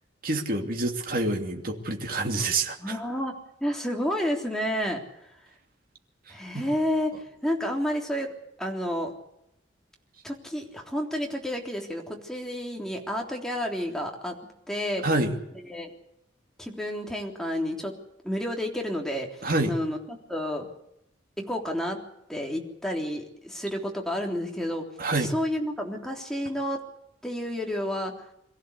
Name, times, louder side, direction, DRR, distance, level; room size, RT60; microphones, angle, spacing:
voice 1, 0.2-3.0 6.5-6.6 15.0-15.4 19.4-19.7 25.0-25.3, right 2 dB, 50° right, 3 dB, 2.8 m, -27 dB
voice 2, 2.8-3.3 3.6-5.0 6.3-7.1 7.4-8.3 8.6-9.1 10.2-14.4 14.7-15.1 15.7-15.9 16.6-17.9 18.2-19.3 19.7-20.7 21.4-22.0 22.3-24.8 25.2-26.8 27.2-28.1, equal, 5° left, 0 dB, 3.5 m, -30 dB
23.5 x 15.0 x 8.3 m, 0.80 s
head